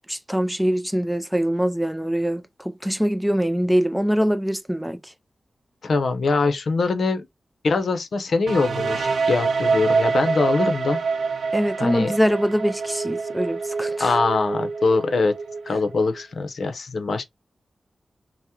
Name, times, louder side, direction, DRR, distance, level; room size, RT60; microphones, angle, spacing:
voice 1, 0.1-5.0 11.5-14.2, equal, ahead, 0.3 m, -23 dB
voice 2, 5.8-7.3 7.6-11.0 11.8-12.1 14.0-15.3 15.7-17.2, left 3 dB, 65° left, 0.6 m, -23 dB
sound 1, 8.5-16.2, right 4 dB, 85° right, 0.4 m, -26 dB
2.8 x 2.0 x 3.4 m
wide cardioid pair, 150°, 0 cm